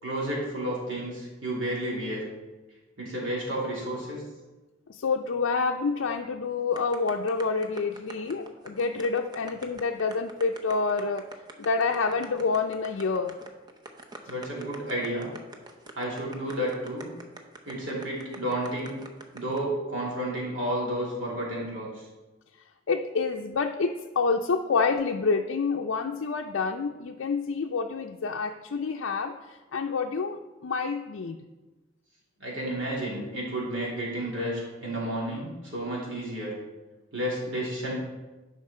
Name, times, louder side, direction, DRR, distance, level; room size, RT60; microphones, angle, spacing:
voice 1, 0.0-2.2 3.0-4.2 14.3-15.3 16.0-17.1 17.6-18.9 19.3-22.0 32.4-36.5 37.1-38.0, right 1 dB, 70° right, -4 dB, 3.1 m, -31 dB
voice 2, 4.9-11.3 11.6-13.3 22.9-31.4, left 4 dB, 75° left, 2 dB, 0.5 m, -28 dB
sound 1, 6.8-19.6, right 2 dB, 20° right, 0.7 m, -44 dB
11.0 x 5.4 x 4.3 m, 1.2 s
head